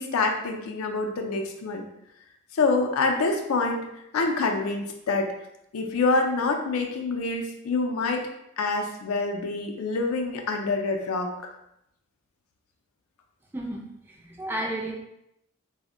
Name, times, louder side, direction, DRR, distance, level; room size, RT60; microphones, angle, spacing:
voice 1, 0.0-1.8 2.5-3.9 4.1-5.3 5.7-8.2 8.6-11.3, left 3 dB, 80° left, 3 dB, 0.4 m, -26 dB
voice 2, 13.5-14.9, right 1 dB, 10° right, -2 dB, 0.3 m, -33 dB
2.1 x 2.1 x 3.6 m, 0.80 s
head